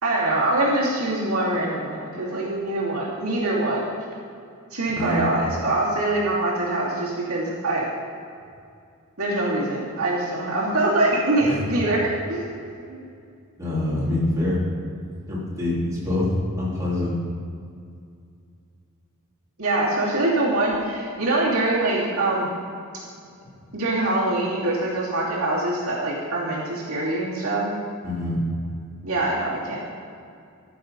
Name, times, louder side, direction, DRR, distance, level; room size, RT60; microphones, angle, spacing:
voice 1, 0.0-3.9 4.7-7.9 9.2-12.6 12.9-13.0 19.6-22.5 23.7-27.7 29.0-29.8, right 2 dB, 75° right, -6 dB, 2.8 m, -24 dB
voice 2, 4.9-5.3 11.4-11.7 13.6-14.6 15.3-17.1 28.0-28.4, left 1 dB, 15° right, -8 dB, 3.0 m, -25 dB
13.5 x 7.0 x 5.3 m, 2.4 s
head